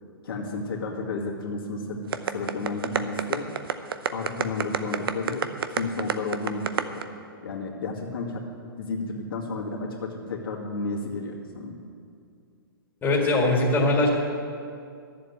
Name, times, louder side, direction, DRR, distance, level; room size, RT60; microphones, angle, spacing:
voice 1, 0.2-3.5 4.1-7.0 7.4-8.5 8.8-11.8, left 3 dB, 70° left, -2 dB, 2.2 m, -32 dB
sound 1, 2.1-7.0, right 7 dB, 75° right, 0.7 m, -26 dB
voice 2, 13.0-14.1, left 2 dB, 15° left, -3 dB, 2.2 m, -21 dB
11.0 x 7.6 x 8.8 m, 2.4 s
hypercardioid pair, 130°, 12 cm